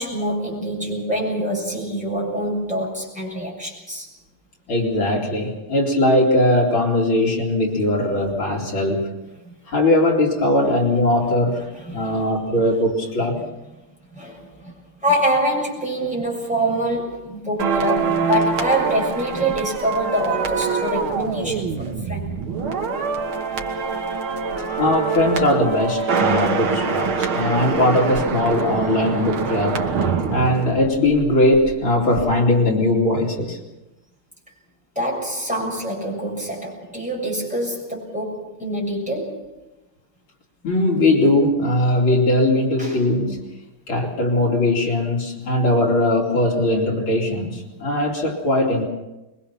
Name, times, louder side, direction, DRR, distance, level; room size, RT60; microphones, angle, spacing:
voice 1, 0.0-4.1 9.4-9.5 11.8-12.2 14.1-14.7 15.0-22.3 23.7-24.0 34.9-39.4 42.8-43.0, right 1 dB, 5° right, -2 dB, 6.8 m, -25 dB
voice 2, 4.7-9.2 9.7-11.6 11.9-13.4 24.8-29.9 30.3-33.6 40.6-43.5 43.9-48.8, left 1 dB, 70° left, -1 dB, 3.7 m, -20 dB
sound 1, 17.6-31.7 32.0-32.2, right 5 dB, 75° right, 2.4 m, -25 dB
24.0 x 22.5 x 5.9 m, 1.0 s
omnidirectional pair, 2.3 m